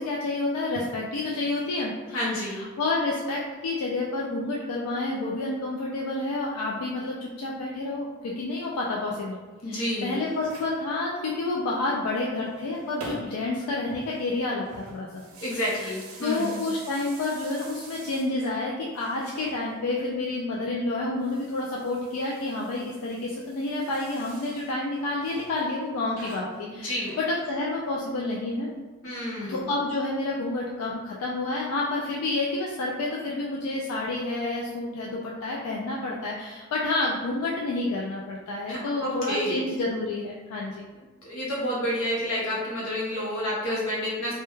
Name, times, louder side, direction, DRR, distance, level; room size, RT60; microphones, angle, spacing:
voice 1, 0.0-9.4 9.7-15.2 15.5-15.9 16.2-28.7 29.5-40.8, left 2 dB, 90° left, -3 dB, 0.3 m, -29 dB
voice 2, 2.1-2.6 9.6-10.1 15.4-16.6 26.7-27.2 29.0-29.7 38.7-39.6 41.2-44.3, equal, 65° left, -5 dB, 0.8 m, -29 dB
sound 1, 9.8-10.8 12.2-13.6 13.8-18.6 18.9-20.1 21.1-24.7 25.2-25.6 26.1-27.7, right 2 dB, 75° right, 0.5 m, -46 dB
2.2 x 2.1 x 3.0 m, 1.3 s
head